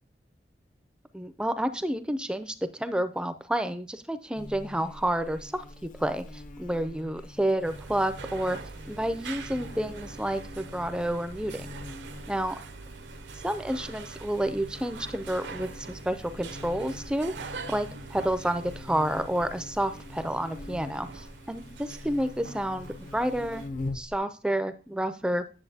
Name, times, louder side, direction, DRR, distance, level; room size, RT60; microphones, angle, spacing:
voice 1, 1.1-8.6 8.9-11.8 12.3-12.6 13.4-17.3 17.7-23.7 23.9-25.5, right 1 dB, 5° right, 11 dB, 0.4 m, -30 dB
Buzz, 4.3-24.2, left 2 dB, 45° left, 0.6 m, -44 dB
sound 1, 7.6-23.7, right 4 dB, 85° right, 0.7 m, -44 dB
9.9 x 7.0 x 2.7 m, 0.37 s
head